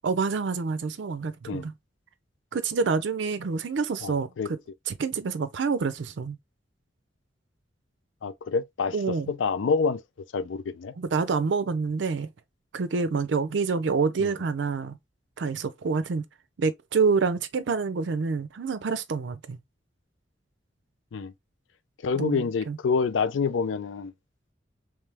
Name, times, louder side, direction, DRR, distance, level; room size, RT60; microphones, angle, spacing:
voice 1, 0.0-1.7 2.5-4.6 4.9-6.4 8.9-9.3 11.0-12.3 12.7-15.0 15.4-16.2 16.6-19.6 22.1-22.8, right 4 dB, 70° right, 0.4 m, -27 dB
voice 2, 4.0-4.5 8.2-10.0 10.3-10.9 14.2-14.3 21.1-21.3 22.0-24.1, left 5 dB, 90° left, 0.4 m, -27 dB
3.4 x 3.1 x 3.2 m
head